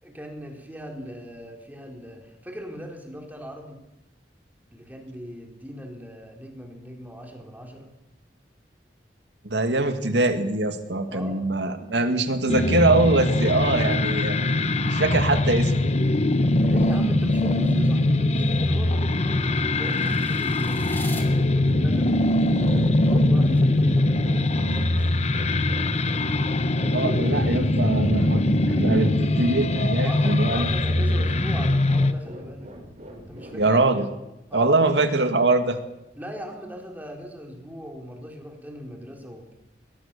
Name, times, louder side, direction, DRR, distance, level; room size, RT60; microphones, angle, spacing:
voice 1, 0.0-3.8 4.7-7.9 11.1-11.5 16.7-20.8 21.2-25.1 30.0-32.7 33.3-33.8 34.5-35.0 36.1-39.5, equal, 10° right, 2 dB, 4.0 m, -39 dB
voice 2, 9.4-14.4 14.8-15.7 26.7-28.4 28.8-30.7 31.0-31.2 33.5-34.1 34.5-35.8, right 2 dB, 80° right, 7 dB, 2.2 m, -23 dB
sound 1, 12.5-32.1, left 1 dB, 40° left, 1.0 m, -22 dB
sound 2, 18.3-21.3, left 2 dB, 10° left, 2.7 m, -43 dB
sound 3, 21.7-33.8, equal, 40° right, 5.3 m, -43 dB
22.0 x 19.5 x 6.9 m, 0.92 s
head